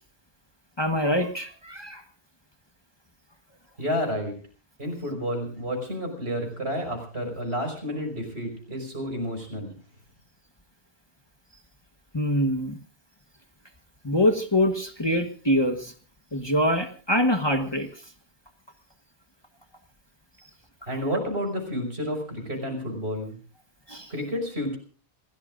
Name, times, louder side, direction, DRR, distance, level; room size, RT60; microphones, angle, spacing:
voice 1, 0.8-2.0 12.1-12.8 14.0-15.9 16.3-17.9 23.9-24.1, left 1 dB, 25° left, 5 dB, 1.3 m, -24 dB
voice 2, 3.8-4.3 4.8-9.7 20.9-23.4 24.1-24.8, equal, 70° right, 4 dB, 5.7 m, -30 dB
27.5 x 16.5 x 2.5 m, 0.41 s
omnidirectional pair, 1.1 m